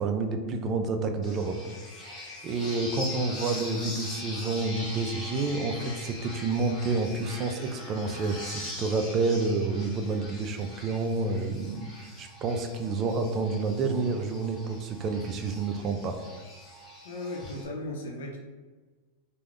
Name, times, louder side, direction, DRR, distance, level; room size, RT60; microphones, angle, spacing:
voice 1, 0.0-1.6 2.4-16.2, right 3 dB, 35° right, 6 dB, 0.4 m, -29 dB
sound 1, 1.2-17.6, left 1 dB, 30° left, 1.0 m, -42 dB
voice 2, 17.0-18.4, left 1 dB, 80° left, -1 dB, 0.7 m, -37 dB
2.4 x 2.2 x 3.5 m, 1.3 s
hypercardioid pair, 105°, 0 cm